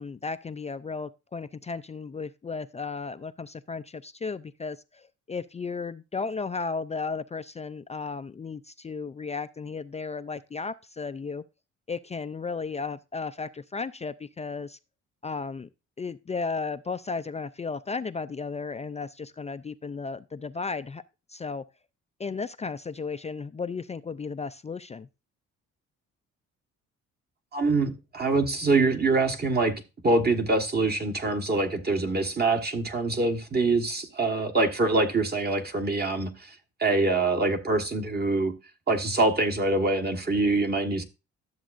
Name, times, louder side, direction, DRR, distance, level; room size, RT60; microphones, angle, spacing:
voice 1, 0.0-11.4 11.9-14.8 15.2-15.7 16.0-21.0 21.3-21.7 22.2-25.1, left 4 dB, 20° left, 0.4 m, -34 dB
voice 2, 27.5-36.5 36.8-38.5 38.9-41.0, right 3 dB, 30° right, 1.3 m, -25 dB
12.5 x 7.1 x 2.5 m
cardioid pair, 90°, 30 cm